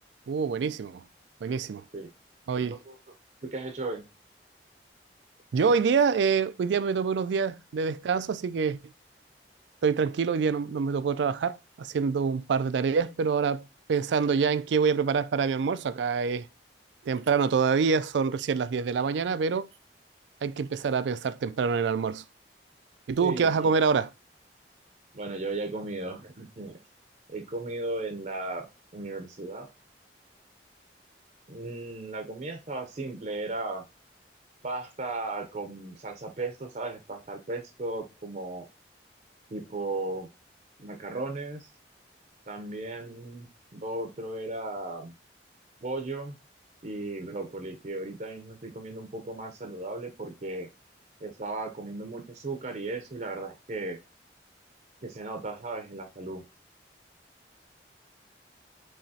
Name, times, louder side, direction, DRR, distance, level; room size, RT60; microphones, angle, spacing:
voice 1, 0.3-1.0 1.4-1.8 2.5-2.8 5.5-8.8 9.8-13.6 13.9-16.5 17.1-19.7 20.4-22.2 23.1-24.1, right 5 dB, 85° right, 0.4 m, -26 dB
voice 2, 2.6-3.0 3.4-4.0 23.2-23.7 25.1-26.8 27.3-28.7 28.9-29.7 31.5-33.8 34.6-38.7 39.5-40.3 40.8-41.7 42.5-45.2 45.8-46.4 46.8-50.7 51.2-54.0 55.0-56.4, right 2 dB, 45° right, 0.6 m, -36 dB
5.5 x 2.9 x 2.7 m
head